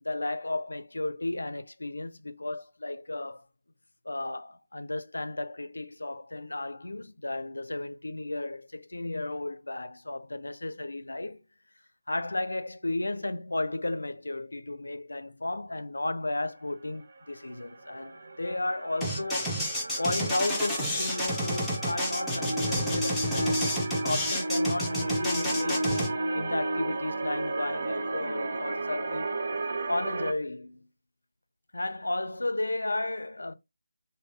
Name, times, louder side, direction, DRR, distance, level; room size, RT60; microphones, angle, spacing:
voice 1, 0.0-3.4 4.1-11.4 12.1-19.7 20.0-25.9 26.3-29.3 29.9-30.9 31.7-33.5, left 2 dB, 75° left, 0.4 m, -34 dB
sound 1, 17.1-30.3, right 2 dB, 55° right, 0.6 m, -33 dB
sound 2, 19.0-26.1, equal, ahead, 0.7 m, -30 dB
3.5 x 2.2 x 3.2 m
figure-of-eight pair, 155°, 0 cm